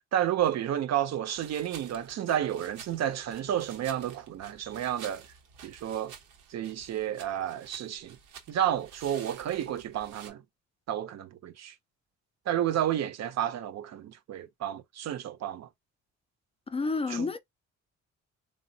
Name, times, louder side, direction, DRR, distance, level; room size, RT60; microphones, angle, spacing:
voice 1, 0.1-5.3 5.6-6.1 6.5-8.2 8.5-10.4 10.9-11.7 12.5-15.7 17.1-17.3, right 10 dB, 60° right, 0.6 m, -31 dB
sound 1, 1.3-10.3, right 7 dB, 90° right, 0.9 m, -51 dB
voice 2, 16.7-17.4, left 4 dB, 20° left, 0.3 m, -30 dB
3.3 x 2.1 x 2.7 m
cardioid pair, 90°, 30 cm